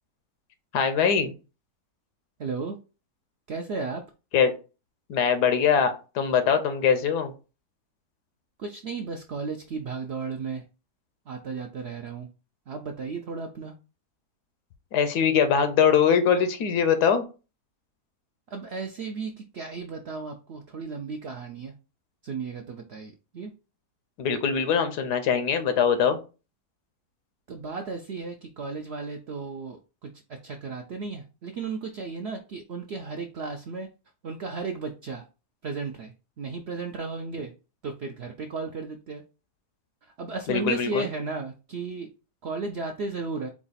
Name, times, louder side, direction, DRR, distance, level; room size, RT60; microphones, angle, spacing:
voice 1, 0.7-1.3 4.3-4.5 5.1-7.3 14.9-17.2 24.2-26.2 40.5-41.1, left 7 dB, 90° left, 9 dB, 1.3 m, -22 dB
voice 2, 2.4-2.8 3.5-4.0 8.6-10.6 11.3-12.3 12.7-13.7 18.5-21.7 22.2-23.5 27.5-30.1 30.4-33.9 34.2-35.2 35.6-37.5 37.8-39.2 40.2-42.1 42.4-43.5, right 4 dB, 70° right, 4 dB, 0.6 m, -34 dB
4.7 x 2.4 x 4.0 m, 0.32 s
omnidirectional pair, 1.7 m